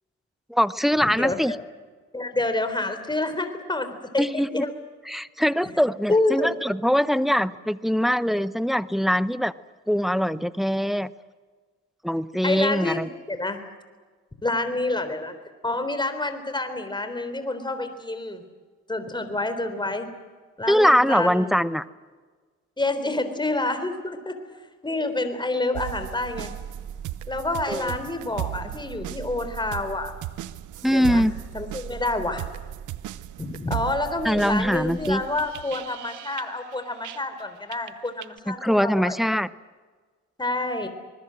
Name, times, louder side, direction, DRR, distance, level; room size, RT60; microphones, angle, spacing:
voice 1, 0.5-1.5 4.2-4.7 5.1-9.5 9.9-11.1 12.0-13.1 20.7-21.8 27.7-27.9 30.8-31.3 34.2-35.2 38.5-39.5, equal, ahead, 15 dB, 0.8 m, -22 dB
voice 2, 1.2-1.6 2.1-4.7 6.1-6.5 12.4-13.6 14.4-15.3 15.6-18.4 18.9-20.1 20.6-21.5 22.8-24.4 24.8-26.5 27.3-30.1 30.8-31.3 31.5-32.4 33.4-39.1 40.4-40.9, left 2 dB, 15° left, 9 dB, 3.8 m, -28 dB
sound 1, 25.7-37.4 37.7-38.4, right 13 dB, 85° right, 0.9 m, -36 dB
25.5 x 20.5 x 7.7 m, 1.4 s
cardioid pair, 90°, 30 cm